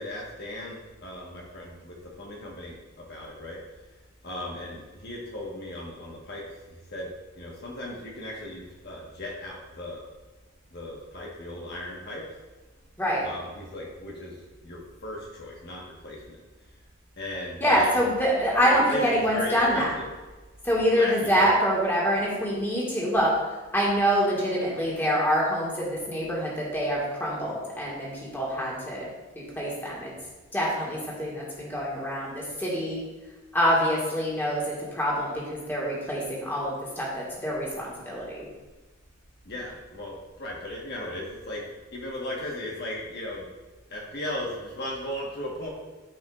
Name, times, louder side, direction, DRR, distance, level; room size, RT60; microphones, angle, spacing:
voice 1, 0.0-3.6 4.2-7.1 7.3-10.0 10.7-12.3 13.2-16.4 17.2-18.1 18.6-20.1 20.8-21.6 39.4-41.6 41.9-43.5 43.9-45.7, left 1 dB, 50° left, -3 dB, 1.3 m, -37 dB
voice 2, 17.6-19.9 20.6-23.4 23.7-28.1 28.3-29.1 29.3-30.1 30.5-33.0 33.5-37.1 37.4-38.4, equal, 10° left, -5 dB, 1.8 m, -25 dB
13.5 x 5.2 x 2.4 m, 1.2 s
head